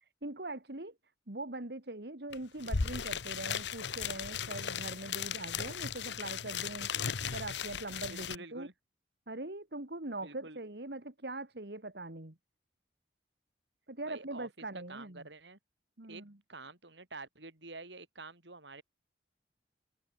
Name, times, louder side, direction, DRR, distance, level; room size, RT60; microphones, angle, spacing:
voice 1, 0.2-0.9 1.3-6.9 7.3-8.7 9.3-12.4 13.9-15.3 16.0-16.4, right 2 dB, 65° right, 2.2 m, -42 dB
sound 1, 2.3-2.4 2.6-8.4, left 6 dB, 80° left, 1.0 m, -36 dB
voice 2, 8.1-8.7 10.2-10.6 14.1-15.6 16.1-16.2 16.5-18.8, right 3 dB, 80° right, 5.8 m, -48 dB
open air
head